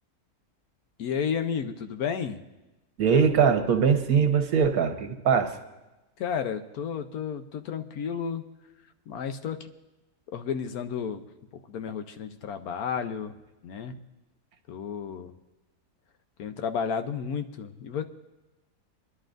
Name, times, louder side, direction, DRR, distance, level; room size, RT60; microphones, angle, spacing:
voice 1, 1.0-2.4 6.2-8.4 9.1-9.7 10.3-11.3 11.5-13.4 13.6-14.0 14.7-15.3 16.4-18.0, left 7 dB, 80° left, 8 dB, 1.2 m, -32 dB
voice 2, 3.0-5.6, right 6 dB, 75° right, 6 dB, 1.5 m, -22 dB
26.0 x 11.0 x 2.6 m, 1.0 s
omnidirectional pair, 1.6 m